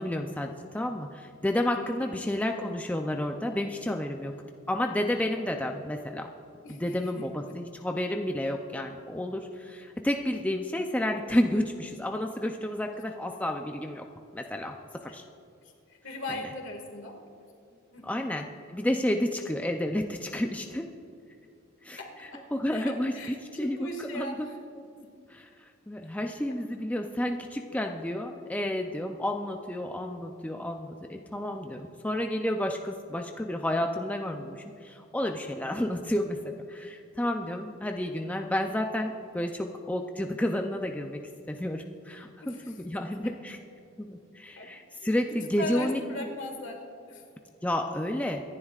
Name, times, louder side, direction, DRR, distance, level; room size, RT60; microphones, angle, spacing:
voice 1, 0.0-4.4 4.7-6.3 6.7-14.1 14.3-15.2 16.3-16.5 18.0-20.9 21.8-24.5 24.8-24.9 25.3-41.2 41.5-43.6 44.0-46.3 47.6-48.4, left 1 dB, 5° left, 3 dB, 0.4 m, -31 dB
voice 2, 16.0-17.1 17.9-18.2 22.0-22.4 22.7-23.3 23.6-24.6 25.0-25.1 42.4-42.7 44.6-44.7 45.0-46.8 47.1-47.2, left 1 dB, 65° left, 2 dB, 1.9 m, -39 dB
25.5 x 11.0 x 2.4 m, 2.5 s
head